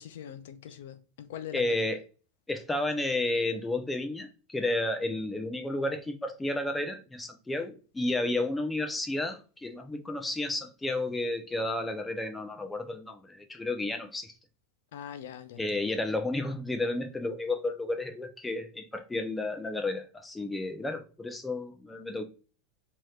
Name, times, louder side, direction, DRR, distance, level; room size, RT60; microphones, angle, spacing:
voice 1, 0.0-1.7 14.9-15.7, left 9 dB, 75° left, 0.5 m, -42 dB
voice 2, 1.5-2.0 2.5-14.3 15.6-22.2, left 2 dB, 10° left, 0.6 m, -32 dB
3.1 x 2.8 x 2.3 m
hypercardioid pair, 100°, 0 cm